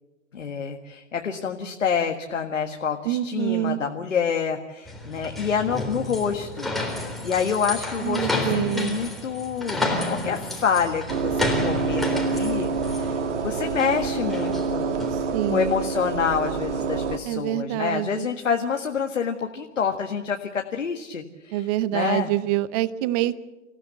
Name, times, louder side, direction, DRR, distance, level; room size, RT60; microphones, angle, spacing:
voice 1, 0.3-6.7 7.0-15.1 15.5-22.3, left 6 dB, 75° left, 4 dB, 1.8 m, -27 dB
voice 2, 3.1-3.8 8.0-9.0 15.3-15.7 17.3-18.3 21.5-23.4, right 14 dB, 30° right, 17 dB, 0.8 m, -26 dB
sound 1, 4.9-15.3, left 2 dB, ahead, 3.6 m, -31 dB
sound 2, 11.1-17.2, right 5 dB, 65° right, 1.8 m, -27 dB
27.5 x 16.0 x 8.3 m, 1.1 s
figure-of-eight pair, 115°, 38 cm